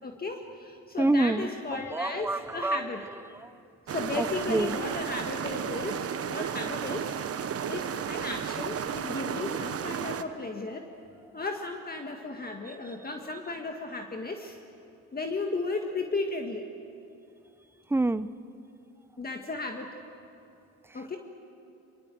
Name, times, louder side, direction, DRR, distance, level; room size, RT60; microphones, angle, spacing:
voice 1, 0.0-3.0 3.9-7.2 7.7-10.9 11.3-14.6 15.1-16.7 19.2-20.0 20.9-21.2, left 3 dB, 30° left, 3 dB, 1.8 m, -35 dB
voice 2, 1.0-1.5 1.9-3.0 3.4-3.5 4.1-4.8 17.9-18.3, right 2 dB, 10° right, 15 dB, 0.6 m, -27 dB
sound 1, 3.9-10.2, right 8 dB, 50° right, 1.1 m, -33 dB
23.5 x 23.0 x 7.8 m, 2.7 s
cardioid pair, 90°, 30 cm